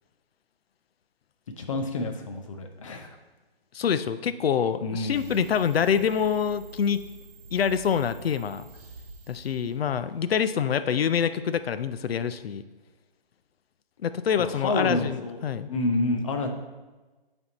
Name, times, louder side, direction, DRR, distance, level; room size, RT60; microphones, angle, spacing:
voice 1, 1.6-3.2 4.8-5.4 14.4-15.4 15.7-16.5, left 2 dB, 35° left, 5 dB, 0.6 m, -29 dB
voice 2, 3.7-7.0 7.5-8.6 9.3-12.6 14.0-15.7, left 7 dB, 80° left, 12 dB, 0.5 m, -26 dB
sound 1, 5.0-10.5, right 1 dB, 40° right, 1.7 m, -47 dB
8.2 x 3.6 x 4.0 m, 1.2 s
hypercardioid pair, 155°, 30 cm